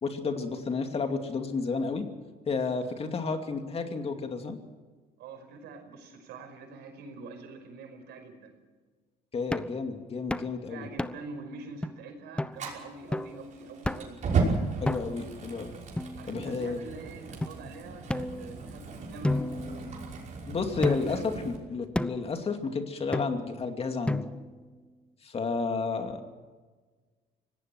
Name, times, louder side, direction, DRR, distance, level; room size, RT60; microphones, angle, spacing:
voice 1, 0.0-2.1 2.5-4.6 9.3-10.9 14.8-15.7 16.3-16.8 20.5-24.3 25.2-26.3, left 4 dB, 35° left, 6 dB, 2.5 m, -31 dB
voice 2, 5.2-8.6 10.7-14.2 16.2-20.0 20.4-21.5, right 3 dB, 80° right, 5 dB, 5.4 m, -45 dB
sound 1, 9.5-9.8 10.3-10.5 11.0-11.4 11.8-11.9 12.4-12.6 13.1-13.4 13.8-14.2 14.8-15.3 16.0-16.7 17.4-17.5 18.1-18.8 19.2-20.3 20.8-21.3 21.9-22.3 23.1-23.6 24.1-24.6, left 1 dB, 5° left, 0.8 m, -32 dB
Fire, 12.5-21.6, right 4 dB, 45° right, 5.6 m, -35 dB
25.0 x 18.0 x 6.2 m, 1.4 s
cardioid pair, 110°, 17 cm